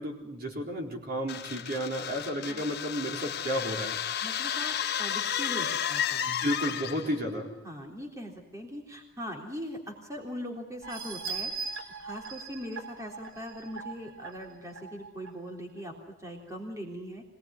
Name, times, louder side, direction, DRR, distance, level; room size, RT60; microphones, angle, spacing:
voice 1, 0.0-4.0 6.3-7.5, equal, 50° right, 1 dB, 4.1 m, -32 dB
sound 1, 1.3-7.2, left 9 dB, 55° left, 1.5 m, -32 dB
voice 2, 4.2-6.3 7.2-17.2, equal, 15° right, 1 dB, 3.5 m, -41 dB
sound 2, 10.8-15.3 15.8-15.9 16.3-16.4, right 5 dB, 70° right, 3.5 m, -40 dB
25.0 x 19.5 x 9.8 m, 0.86 s
head